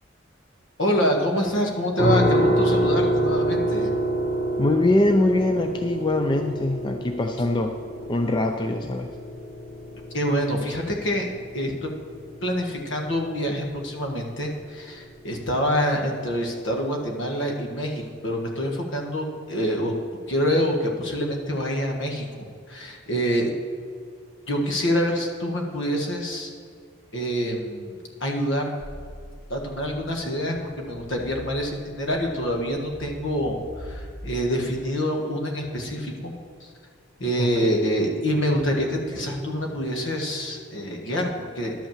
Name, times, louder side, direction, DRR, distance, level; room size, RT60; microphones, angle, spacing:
voice 1, 0.8-3.9 10.1-11.3 11.5-11.9 12.4-19.9 20.3-22.3 22.7-23.5 24.5-26.5 27.1-28.7 29.5-36.3 36.6-36.7 37.2-41.7, equal, 65° left, 1 dB, 1.4 m, -26 dB
sound 1, 2.0-14.8, right 1 dB, 45° left, 1.9 m, -27 dB
voice 2, 4.6-7.8 8.1-9.1 37.4-37.8, left 2 dB, 20° left, 5 dB, 0.3 m, -23 dB
sound 2, 28.8-34.4, equal, 5° right, 1.6 m, -42 dB
11.0 x 5.5 x 7.3 m, 2.1 s
head